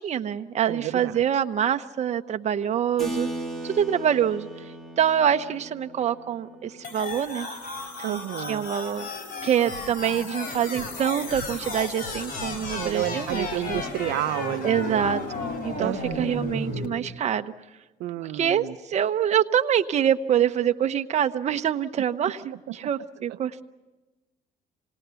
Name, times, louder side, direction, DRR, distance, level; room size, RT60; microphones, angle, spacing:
voice 1, 0.0-3.3 3.6-4.5 5.0-7.5 8.5-9.1 9.4-13.8 14.6-15.2 15.6-17.5 18.3-23.6, right 9 dB, 40° right, 8 dB, 0.8 m, -25 dB
voice 2, 0.6-1.2 8.0-8.7 12.7-15.0 15.8-16.4 18.0-18.8 22.7-22.8, right 14 dB, 80° right, 11 dB, 0.7 m, -31 dB
Keyboard (musical), 3.0-9.0, right 1 dB, ahead, 2.9 m, -38 dB
sound 1, 6.8-16.9, left 3 dB, 55° left, 5.3 m, -33 dB
27.0 x 19.0 x 6.9 m, 1.1 s
cardioid pair, 110°, 17 cm